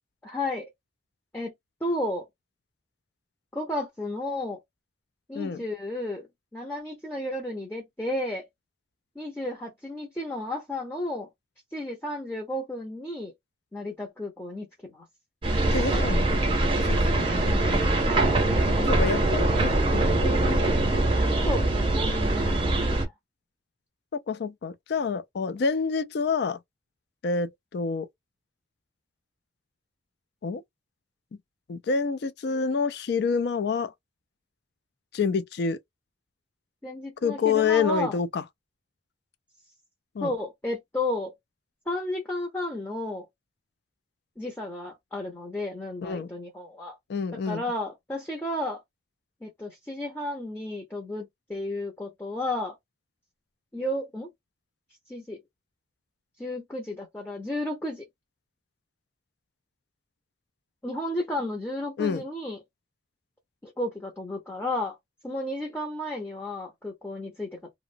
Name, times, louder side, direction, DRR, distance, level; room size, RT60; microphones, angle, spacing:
voice 1, 0.2-0.6 1.3-1.5 1.8-2.3 3.5-4.6 5.3-6.3 6.5-8.5 9.2-11.3 11.7-13.3 13.7-15.1 17.3-17.7 18.1-18.8 21.4-23.1 36.8-38.2 40.2-41.3 41.9-43.3 44.4-47.0 47.4-48.8 49.4-52.7 53.7-54.3 55.1-55.4 56.4-58.0 60.8-62.6 63.6-65.0 65.2-67.6, left 1 dB, 10° left, 0.6 m, -33 dB
sound 1, 15.4-23.1, right 2 dB, 25° right, 0.6 m, -23 dB
voice 2, 15.7-16.3 16.8-17.9 18.8-20.7 24.1-26.6 27.2-28.1 30.4-30.6 31.7-33.9 35.1-35.8 37.2-38.4 40.2-40.3 46.0-46.3 47.1-47.6 62.0-62.2, left 5 dB, 55° left, 0.3 m, -28 dB
2.8 x 2.0 x 2.5 m
head